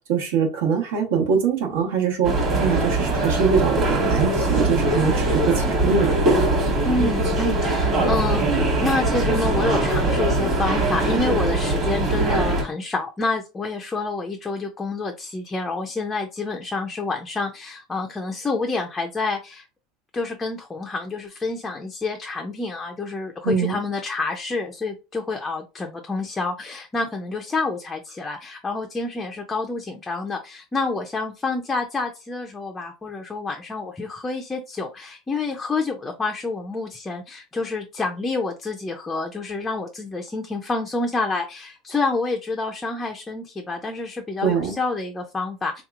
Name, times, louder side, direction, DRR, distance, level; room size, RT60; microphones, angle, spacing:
voice 1, 0.1-6.2 23.4-23.8 44.4-44.8, right 6 dB, 80° right, 1.2 m, -23 dB
sound 1, 2.2-12.6, right 2 dB, 25° right, 1.2 m, -21 dB
voice 2, 6.8-19.6 20.1-45.8, left 3 dB, 10° left, 0.4 m, -28 dB
3.7 x 2.9 x 2.4 m
supercardioid pair, 160°, 0 cm